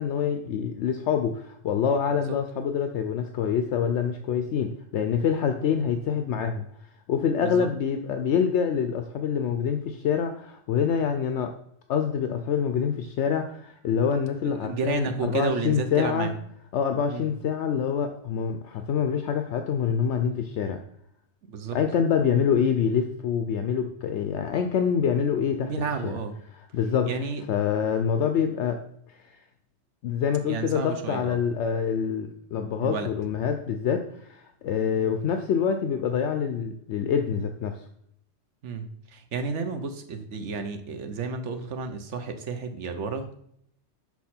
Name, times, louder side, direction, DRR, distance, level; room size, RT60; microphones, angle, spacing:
voice 1, 0.0-6.7 7.1-11.5 11.9-16.3 16.7-20.8 21.7-25.7 26.0-26.1 26.7-27.1 27.5-28.8 30.0-37.9, left 7 dB, 75° left, 7 dB, 0.9 m, -26 dB
voice 2, 14.4-16.3 17.1-17.3 21.5-21.8 25.6-26.4 27.1-27.4 30.4-31.4 32.8-33.1 38.6-43.5, right 4 dB, 75° right, 7 dB, 1.1 m, -31 dB
6.2 x 5.9 x 4.3 m, 0.70 s
omnidirectional pair, 1.2 m